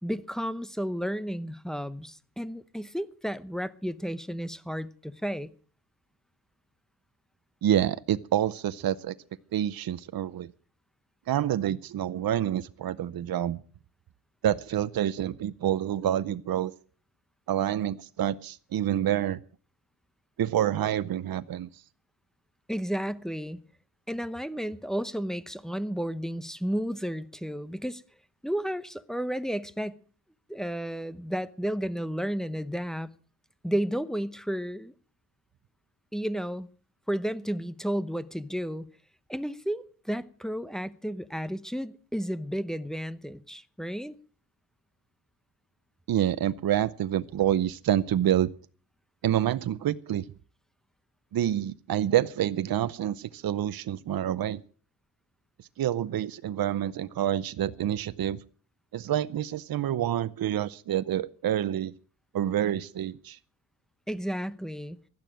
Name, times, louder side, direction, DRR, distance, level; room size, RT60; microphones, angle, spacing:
voice 1, 0.0-5.5 22.7-23.6 24.1-28.0 28.4-30.0 30.5-33.1 33.6-34.9 36.1-36.7 37.1-38.9 39.3-44.2 64.1-65.0, equal, ahead, 0.8 m, -32 dB
voice 2, 7.6-9.1 9.5-10.5 11.3-13.6 14.4-16.7 17.5-19.4 20.4-21.7 46.1-48.5 49.2-50.3 51.3-54.6 55.8-58.4 58.9-61.9 62.3-63.4, right 11 dB, 70° right, 0.7 m, -27 dB
16.0 x 12.0 x 6.2 m
wide cardioid pair, 135°, 37 cm